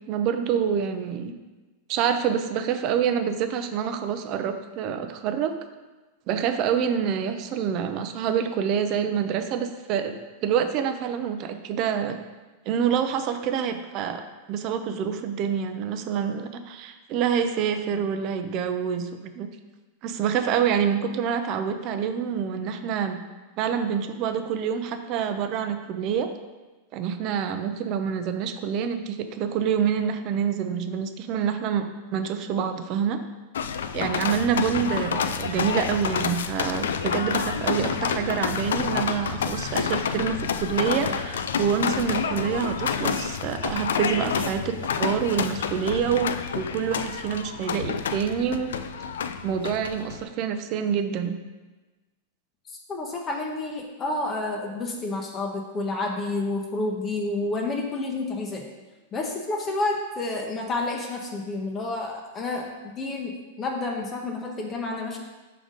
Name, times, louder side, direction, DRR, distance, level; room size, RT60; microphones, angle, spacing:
voice 1, 0.1-1.3 1.9-5.6 6.3-12.2 12.7-19.5 20.0-23.2 23.6-26.3 26.9-33.2 33.9-48.8 49.4-51.4, right 7 dB, 45° right, 8 dB, 0.5 m, -27 dB
sound 1, 33.5-50.3, left 7 dB, 85° left, 0.3 m, -29 dB
voice 2, 52.7-58.7 59.1-65.2, left 2 dB, 30° left, 1 dB, 0.8 m, -30 dB
5.0 x 3.8 x 5.1 m, 1.2 s
hypercardioid pair, 115°, 0 cm